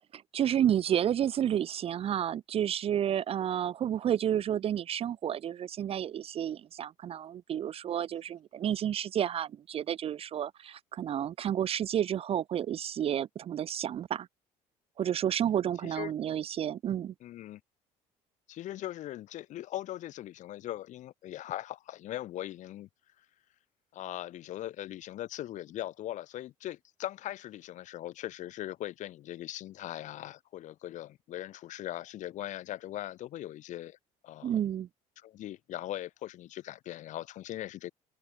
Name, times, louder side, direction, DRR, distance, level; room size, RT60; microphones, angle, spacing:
voice 1, 0.1-14.3 15.0-17.1 34.4-34.9, right 10 dB, 40° right, 0.4 m, -31 dB
voice 2, 15.8-16.1 17.2-17.6 18.5-22.9 23.2-23.3 23.9-34.0 34.2-34.6 35.2-37.9, left 13 dB, 55° left, 0.4 m, -40 dB
supercardioid pair, 90°, 15 cm